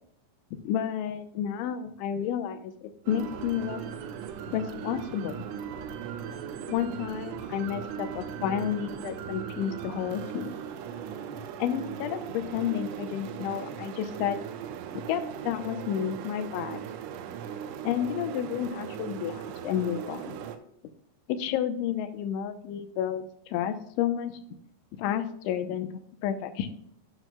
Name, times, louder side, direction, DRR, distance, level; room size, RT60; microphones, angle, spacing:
voice 1, 0.6-3.8 4.5-5.3 6.6-10.6 11.6-14.4 15.0-16.8 17.8-20.4 21.3-24.3 25.0-25.9 26.2-26.7, left 9 dB, 85° left, 9 dB, 3.0 m, -31 dB
sound 1, 3.1-20.6, right 8 dB, 80° right, 3.2 m, -38 dB
12.0 x 9.1 x 2.3 m, 0.71 s
omnidirectional pair, 5.5 m